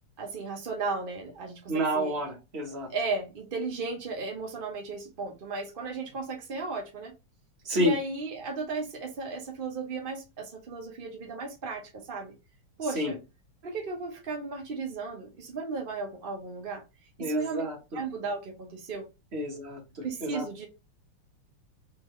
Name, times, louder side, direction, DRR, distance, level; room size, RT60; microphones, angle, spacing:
voice 1, 0.2-2.2 2.9-7.1 7.7-12.3 12.8-13.2 13.6-16.8 17.2-17.6 17.9-19.1 20.0-20.7, right 4 dB, 60° right, 0.5 m, -35 dB
voice 2, 1.7-2.9 7.6-7.9 12.9-13.1 17.2-17.8 19.3-20.4, equal, 35° right, 1.2 m, -29 dB
4.3 x 3.8 x 3.0 m
omnidirectional pair, 2.4 m